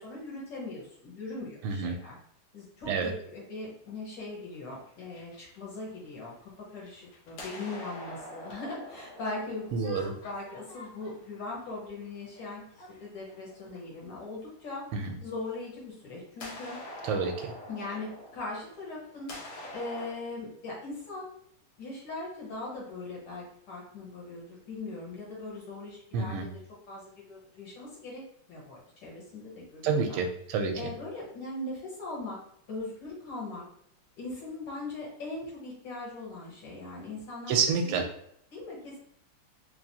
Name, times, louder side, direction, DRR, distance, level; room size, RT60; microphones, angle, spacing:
voice 1, 0.0-2.2 2.5-12.6 12.9-14.8 15.2-16.8 17.7-19.3 19.7-21.3 21.8-26.5 26.9-30.2 30.7-32.4 32.7-33.6 34.2-37.6 37.8-38.0 38.5-39.0, left 2 dB, 60° left, -4 dB, 1.8 m, -40 dB
voice 2, 1.6-1.9 2.8-3.1 9.7-10.1 14.9-15.1 17.0-17.5 26.1-26.5 29.8-30.8 37.5-38.0, right 5 dB, 90° right, 5 dB, 1.5 m, -28 dB
sound 1, 4.5-6.3 6.7-14.0 15.5-15.6 16.4-20.1, left 1 dB, 80° left, 1.8 m, -46 dB
4.0 x 3.1 x 2.7 m, 0.67 s
omnidirectional pair, 2.3 m